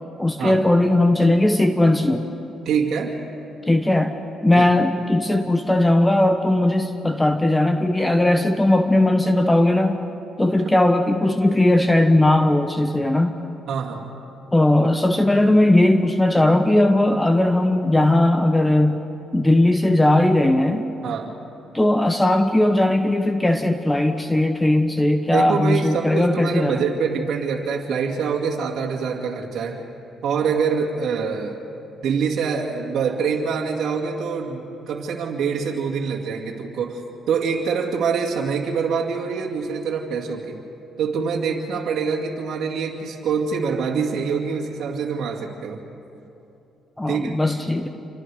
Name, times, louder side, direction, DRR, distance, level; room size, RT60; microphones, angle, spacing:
voice 1, 0.2-2.2 3.7-4.1 4.4-10.1 10.4-13.4 14.5-19.0 19.3-20.8 21.7-26.8 47.0-47.9, left 1 dB, 10° left, 7 dB, 1.1 m, -18 dB
voice 2, 2.6-3.2 4.5-4.7 13.7-14.1 21.0-21.3 25.3-29.8 30.2-31.6 32.0-37.0 37.3-40.6 41.0-45.8 47.1-47.3, right 6 dB, 70° right, -2 dB, 2.3 m, -25 dB
28.0 x 25.0 x 4.9 m, 3.0 s
cardioid pair, 90°, 0 cm